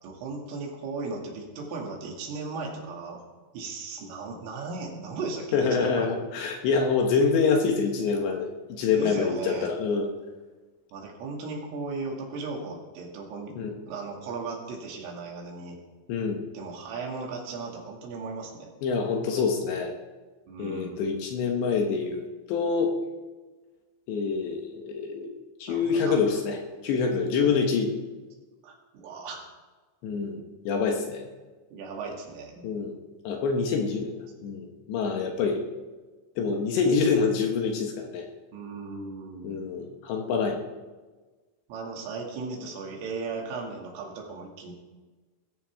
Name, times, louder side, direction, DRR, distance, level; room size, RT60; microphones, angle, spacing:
voice 1, 0.0-3.2 3.5-6.1 8.9-9.7 10.9-13.6 13.9-15.8 16.5-18.7 20.5-21.1 25.7-26.3 28.6-29.4 31.7-32.7 38.5-39.6 41.7-44.7, right 4 dB, 75° right, 0 dB, 4.9 m, -36 dB
voice 2, 5.5-10.1 13.6-13.7 16.1-16.4 18.8-19.9 20.6-23.0 24.1-25.3 25.6-27.9 30.0-31.2 32.6-33.0 33.2-34.1 34.4-35.6 36.4-38.3 39.4-40.6, left 5 dB, 70° left, 2 dB, 3.2 m, -26 dB
21.0 x 14.5 x 3.6 m, 1.3 s
omnidirectional pair, 5.8 m